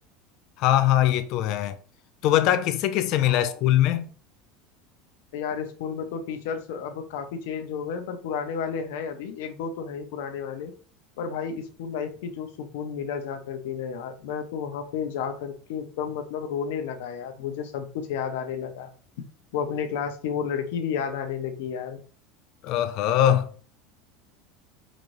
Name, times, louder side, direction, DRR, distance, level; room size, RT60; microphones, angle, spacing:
voice 1, 0.6-1.8 2.2-4.1 22.6-23.5, left 12 dB, 45° left, 0.4 m, -22 dB
voice 2, 3.2-3.6 5.3-10.7 11.2-18.9 19.5-22.0, left 7 dB, 70° left, 0.7 m, -32 dB
5.0 x 3.1 x 2.6 m
supercardioid pair, 170°, 0 cm